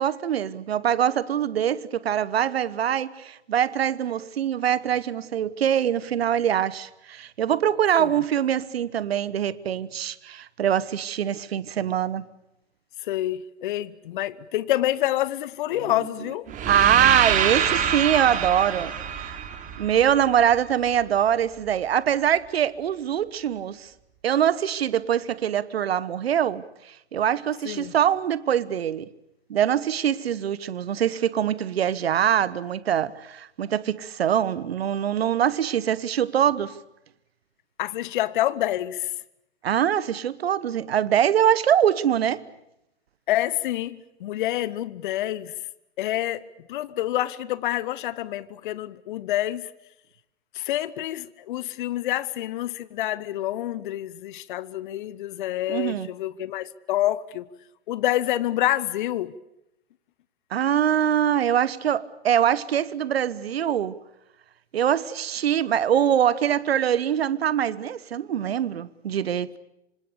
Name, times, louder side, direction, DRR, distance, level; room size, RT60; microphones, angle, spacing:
voice 1, 0.0-12.3 16.7-19.4 19.8-23.9 24.2-29.1 29.5-36.8 39.6-42.4 55.7-56.1 60.5-64.0 64.7-69.6, right 9 dB, 65° right, 1.2 m, -23 dB
voice 2, 13.0-16.5 27.6-27.9 37.8-39.1 43.3-45.6 46.0-49.7 50.5-57.5 57.9-59.4, left 14 dB, 50° left, 1.0 m, -27 dB
sound 1, 16.5-20.5, right 8 dB, 25° right, 3.0 m, -26 dB
27.0 x 26.0 x 6.9 m
figure-of-eight pair, 115°, 33 cm